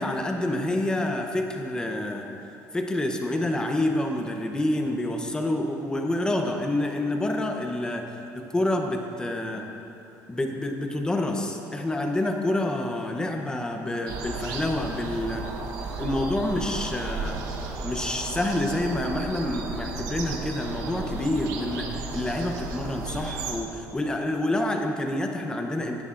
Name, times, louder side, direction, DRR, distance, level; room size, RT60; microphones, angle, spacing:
voice 1, 0.0-2.3 2.7-8.0 8.3-9.6 10.3-15.4 16.0-17.4 17.8-26.0, left 1 dB, 10° left, 3 dB, 0.8 m, -28 dB
sound 1, 14.1-23.6, right 3 dB, 80° right, 1.0 m, -34 dB
15.5 x 9.5 x 2.5 m, 2.8 s
cardioid pair, 135°, 6 cm